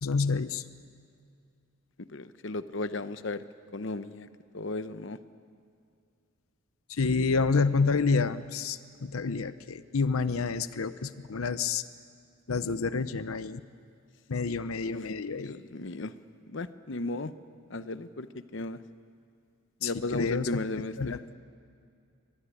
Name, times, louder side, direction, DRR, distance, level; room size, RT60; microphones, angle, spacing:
voice 1, 0.0-0.6 6.9-11.8 12.5-13.6 14.3-15.5 19.8-20.6 21.0-21.2, left 4 dB, 90° left, 13 dB, 0.7 m, -28 dB
voice 2, 2.1-3.4 3.7-4.3 4.5-5.2 14.8-16.1 16.5-17.3 17.7-18.3 18.5-18.8 19.8-21.1, left 2 dB, 60° left, 12 dB, 0.8 m, -35 dB
24.0 x 22.0 x 10.0 m, 2.3 s
head